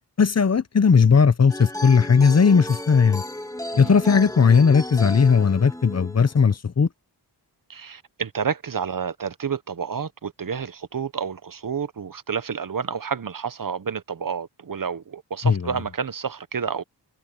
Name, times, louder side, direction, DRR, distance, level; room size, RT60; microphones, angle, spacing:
voice 1, 0.2-3.2 3.8-6.9 15.4-15.6, left 5 dB, 35° left, 0.8 m, -17 dB
sound 1, 1.5-6.5, left 1 dB, 10° left, 1.7 m, -34 dB
voice 2, 7.7-16.8, right 6 dB, 50° right, 0.9 m, -30 dB
wide cardioid pair, 95°, 43 cm